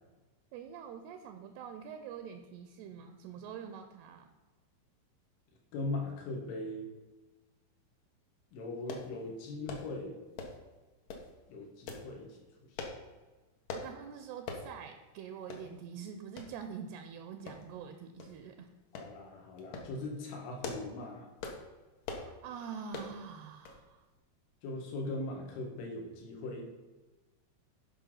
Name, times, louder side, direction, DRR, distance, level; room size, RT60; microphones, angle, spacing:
voice 1, 0.5-4.3 13.7-18.7 22.1-24.0, right 7 dB, 80° right, 7 dB, 2.4 m, -45 dB
voice 2, 5.7-6.9 8.5-10.2 11.5-12.4 18.9-21.3 24.6-26.6, left 2 dB, 90° left, 0 dB, 4.4 m, -39 dB
sound 1, 8.9-9.1 9.7-9.9 10.4-10.6 11.1-11.3 11.9-12.1 12.8-13.0 13.7-13.9 14.5-14.7 15.1-15.2 15.5-15.7 16.4-16.5 17.5-17.8 18.2-18.3 19.0-19.1 19.6-19.9 20.4-20.9 21.4-21.6 22.0-22.3 22.9-23.1 23.7-23.8 24.1-24.2, left 4 dB, 65° left, 2.2 m, -42 dB
11.5 x 5.4 x 5.6 m, 1.2 s
omnidirectional pair, 5.4 m